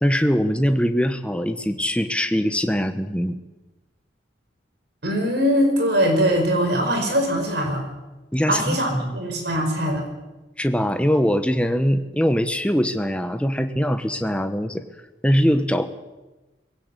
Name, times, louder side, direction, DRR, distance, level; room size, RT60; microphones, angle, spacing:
voice 1, 0.0-3.4 8.3-9.2 10.6-14.8 15.2-15.9, equal, 5° left, 8 dB, 1.2 m, -22 dB
voice 2, 5.0-7.9 8.5-10.1, equal, 60° right, 4 dB, 5.1 m, -21 dB
20.5 x 17.0 x 8.3 m, 1.1 s
head